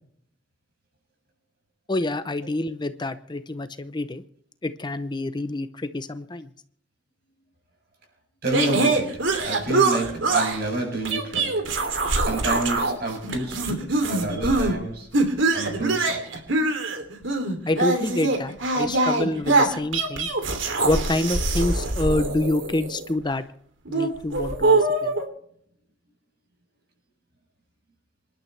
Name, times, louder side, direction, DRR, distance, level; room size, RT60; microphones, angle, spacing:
voice 1, 1.9-4.2 4.6-6.5 17.7-20.3 20.8-23.4 23.9-25.2, left 2 dB, 25° left, 0.7 m, -27 dB
voice 2, 8.4-11.7 12.2-15.1 15.5-16.4, right 2 dB, 55° right, 7.7 m, -29 dB
sound 1, 8.5-10.6 11.1-13.0 13.2-14.8 15.1-23.1 23.9-25.2, right 2 dB, 85° right, 2.9 m, -23 dB
26.5 x 12.0 x 3.3 m
head